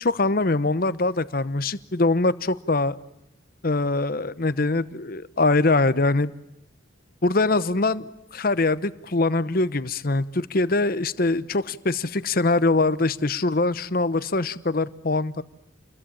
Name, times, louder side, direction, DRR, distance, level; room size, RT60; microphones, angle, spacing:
voice 1, 0.0-3.0 3.6-6.3 7.2-15.4, left 2 dB, 50° left, 15 dB, 0.9 m, -23 dB
29.0 x 21.5 x 8.8 m, 0.85 s
head